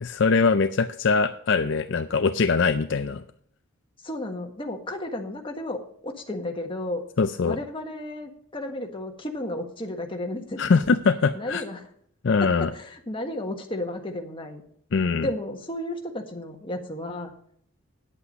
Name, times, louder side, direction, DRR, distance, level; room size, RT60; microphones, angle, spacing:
voice 1, 0.0-3.2 7.2-7.6 10.6-11.6 12.2-12.7 14.9-15.3, left 4 dB, 60° left, 10 dB, 0.5 m, -22 dB
voice 2, 4.0-7.0 7.4-10.6 11.3-11.8 12.4-14.6 15.2-17.3, left 1 dB, 25° left, 3 dB, 1.5 m, -33 dB
9.7 x 8.5 x 5.2 m, 0.64 s
head